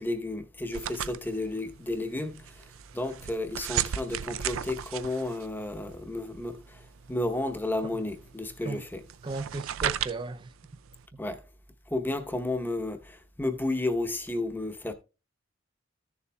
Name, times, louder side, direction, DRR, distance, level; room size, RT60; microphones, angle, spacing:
voice 1, 0.0-2.4 2.9-6.5 7.1-9.0 11.2-11.4 11.9-13.0 13.4-14.9, left 2 dB, 10° left, 0.8 m, -32 dB
sound 1, 0.7-11.0, right 10 dB, 90° right, 0.4 m, -36 dB
voice 2, 9.2-10.5 11.1-11.2, right 3 dB, 25° right, 0.4 m, -35 dB
14.5 x 6.9 x 2.2 m
head